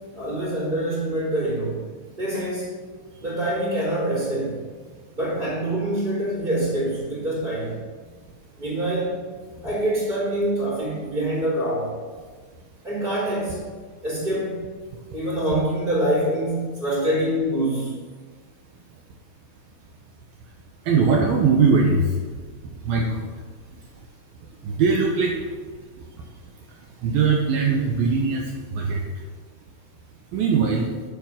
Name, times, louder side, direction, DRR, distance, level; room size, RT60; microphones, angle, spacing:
voice 1, 0.1-1.8 2.2-2.7 3.2-4.6 5.1-7.8 8.6-9.2 9.6-11.9 12.8-13.7 14.0-14.7 15.1-17.9, right 1 dB, 10° right, -6 dB, 3.0 m, -25 dB
voice 2, 20.9-22.1 22.9-23.2 24.7-25.4 27.0-28.5 28.7-29.0 30.3-30.9, right 5 dB, 90° right, 1 dB, 2.1 m, -20 dB
11.0 x 7.6 x 6.4 m, 1.5 s
omnidirectional pair, 5.8 m